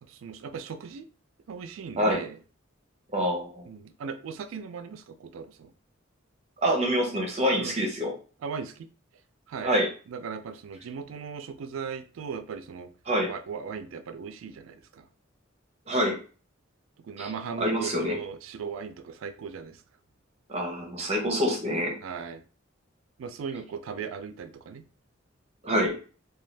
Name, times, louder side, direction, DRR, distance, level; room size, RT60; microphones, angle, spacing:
voice 1, 0.0-1.1 1.5-2.4 3.7-5.7 7.6-7.8 8.4-8.9 9.5-9.8 10.1-12.9 13.3-15.1 17.0-19.8 22.0-22.4 23.2-24.8, right 6 dB, 85° right, 0.3 m, -38 dB
voice 2, 3.1-3.7 6.6-8.1 9.6-9.9 13.1-13.3 15.9-16.2 17.2-17.3 17.6-18.2 20.5-21.9 25.6-26.0, equal, 35° right, 0.7 m, -26 dB
2.5 x 2.3 x 3.2 m
head